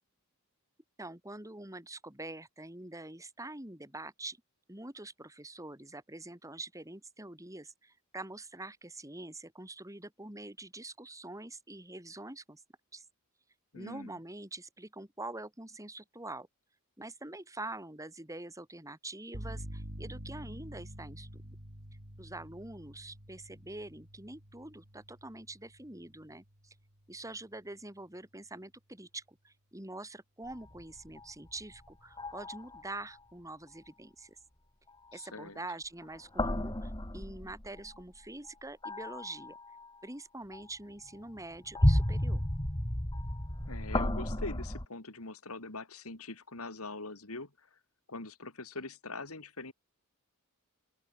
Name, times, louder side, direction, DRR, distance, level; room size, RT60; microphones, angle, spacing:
voice 1, 1.0-4.4 4.7-12.6 12.9-13.0 13.7-16.5 17.0-21.6 22.2-26.7 27.1-34.4 35.1-39.6 40.0-42.4, right 2 dB, 15° right, 6.4 m, -45 dB
voice 2, 13.7-14.2 35.1-35.6 43.7-47.8 48.1-49.7, left 3 dB, 70° left, 3.5 m, -43 dB
sound 1, 19.3-27.1, equal, 50° right, 6.2 m, -47 dB
sound 2, 30.4-31.8 32.2-33.0 36.0-38.0 38.8-39.9 40.5-40.6 41.3-44.8, left 1 dB, 20° left, 2.2 m, -32 dB
open air
head